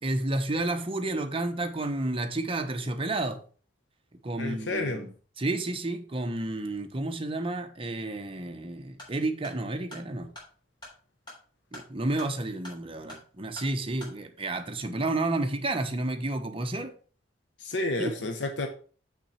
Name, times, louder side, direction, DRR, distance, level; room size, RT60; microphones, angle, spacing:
voice 1, 0.0-3.4 4.2-10.3 11.7-16.9 18.0-18.1, right 2 dB, 30° right, 0.9 m, -31 dB
voice 2, 4.4-5.1 17.6-18.7, left 2 dB, 75° left, 1.0 m, -30 dB
sound 1, 8.9-14.2, left 1 dB, 25° left, 3.7 m, -49 dB
6.8 x 6.0 x 4.3 m
head